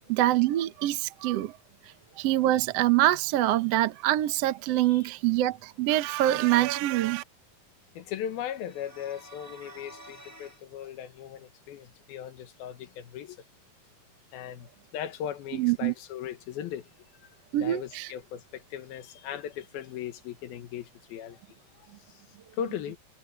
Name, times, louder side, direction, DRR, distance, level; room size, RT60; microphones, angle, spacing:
voice 1, 0.0-1.6 2.2-7.2 15.6-15.9 17.5-18.1, right 14 dB, 70° right, 1.5 m, -25 dB
voice 2, 7.9-13.4 14.3-16.9 17.6-22.2 22.5-23.0, left 9 dB, 85° left, 3.2 m, -38 dB
sound 1, 8.4-10.6, right 1 dB, 10° left, 1.0 m, -50 dB
omnidirectional pair, 4.1 m